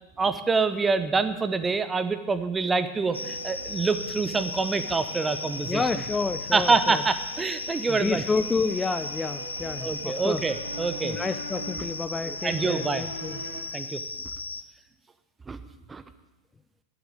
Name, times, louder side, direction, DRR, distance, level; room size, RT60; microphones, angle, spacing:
voice 1, 0.2-5.8 6.5-8.2 9.8-11.2 12.2-13.0 13.7-14.0 15.5-15.6 15.9-16.0, right 4 dB, 15° right, 12 dB, 0.8 m, -26 dB
sound 1, 3.1-14.6, left 3 dB, 80° left, 0.5 m, -36 dB
sound 2, 3.1-13.6, right 4 dB, 65° right, 2.1 m, -43 dB
voice 2, 5.7-7.0 7.9-10.4 11.0-13.4, left 4 dB, 15° left, 10 dB, 0.5 m, -29 dB
11.0 x 8.1 x 7.9 m, 0.99 s
figure-of-eight pair, 90°, 0 cm